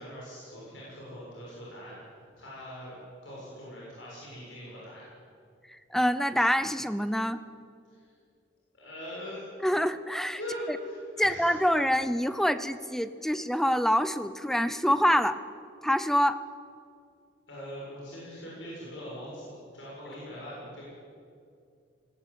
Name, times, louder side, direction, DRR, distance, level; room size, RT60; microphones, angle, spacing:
voice 1, 0.0-1.9 2.4-5.0 7.9-8.1 8.7-9.5 10.4-11.7 17.5-20.8, equal, 90° left, -6 dB, 7.2 m, -41 dB
voice 2, 5.7-7.4 9.6-10.4 11.2-15.4 15.8-16.4, equal, ahead, 13 dB, 0.6 m, -26 dB
19.0 x 18.5 x 8.6 m, 2.4 s
head